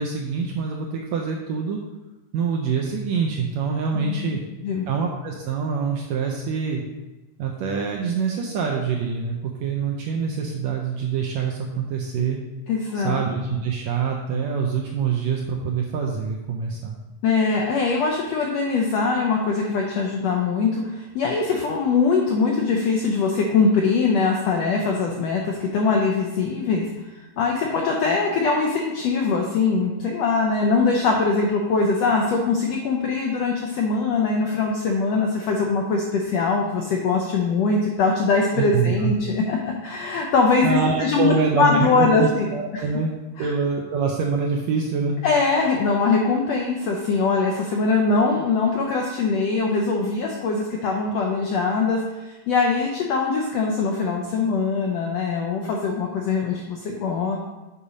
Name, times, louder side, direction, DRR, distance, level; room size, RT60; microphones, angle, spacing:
voice 1, 0.0-1.8 2.3-4.4 4.9-6.8 7.4-12.4 12.9-17.0 38.6-39.1 40.6-43.1 43.4-45.2, right 5 dB, 80° right, 0 dB, 1.6 m, -25 dB
voice 2, 3.9-4.9 12.7-13.2 17.2-27.1 27.4-42.5 42.7-42.8 43.4-43.5 45.2-57.4, left 4 dB, 80° left, 0 dB, 1.4 m, -22 dB
7.1 x 4.1 x 5.0 m, 1.1 s
omnidirectional pair, 3.7 m